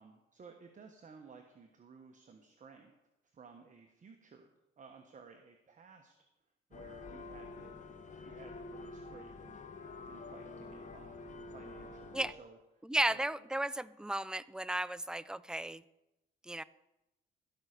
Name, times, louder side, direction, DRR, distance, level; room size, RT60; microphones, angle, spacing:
voice 1, 0.0-2.9 3.2-6.1 6.7-7.8 8.2-12.6 13.1-13.5, right 5 dB, 40° right, 4 dB, 1.2 m, -57 dB
sound 1, 6.7-12.3, left 3 dB, 40° left, 1.4 m, -48 dB
voice 2, 12.8-15.8 16.5-16.6, right 1 dB, 5° right, 16 dB, 0.4 m, -34 dB
16.0 x 5.7 x 6.6 m, 0.96 s
cardioid pair, 90°, 20 cm